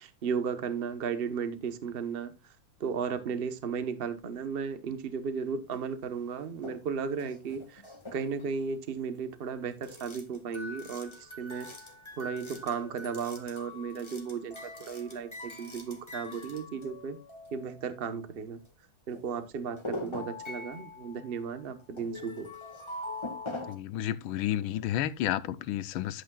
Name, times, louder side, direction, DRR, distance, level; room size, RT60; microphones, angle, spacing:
voice 1, 0.0-2.5 2.8-7.8 8.1-11.7 12.2-17.2 17.5-18.6 19.1-22.5, right 6 dB, 40° right, 0.9 m, -35 dB
sound 1, 5.7-5.8 6.4-6.8 7.1-8.6 9.8-18.2 18.6-18.7 19.1-19.2 19.8-23.7, left 2 dB, 15° left, 1.5 m, -43 dB
voice 2, 23.7-26.2, left 12 dB, 85° left, 1.5 m, -31 dB
11.5 x 8.5 x 2.3 m
omnidirectional pair, 2.2 m